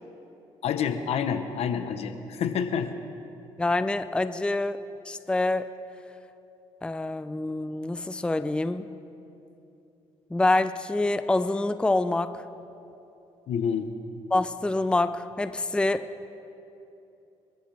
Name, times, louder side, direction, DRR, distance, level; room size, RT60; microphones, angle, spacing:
voice 1, 0.6-2.9 13.5-13.9, left 7 dB, 70° left, 9 dB, 1.1 m, -28 dB
voice 2, 3.6-4.8 5.1-5.7 6.8-8.9 10.3-12.4 14.3-16.1, left 2 dB, 10° left, 11 dB, 0.5 m, -26 dB
27.0 x 13.5 x 3.5 m, 2.9 s
cardioid pair, 80°, 11 cm